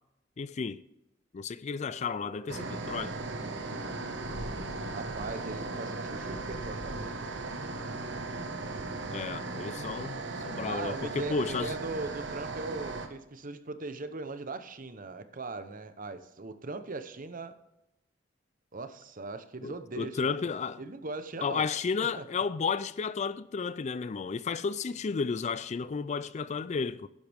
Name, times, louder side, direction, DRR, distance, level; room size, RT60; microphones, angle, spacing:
voice 1, 0.4-0.8 1.3-3.1 9.1-11.7 19.6-20.8 21.4-27.1, left 5 dB, 35° left, 0.4 m, -33 dB
Wind instrument woodwind instrument, 1.7-9.8, right 4 dB, 50° left, 4.9 m, -53 dB
sound 1, 2.5-13.1, right 3 dB, 65° right, 1.3 m, -37 dB
voice 2, 4.9-7.3 10.6-17.6 18.7-20.5 20.8-21.7 22.2-22.3, right 3 dB, 45° right, 0.9 m, -39 dB
11.5 x 10.5 x 3.5 m
head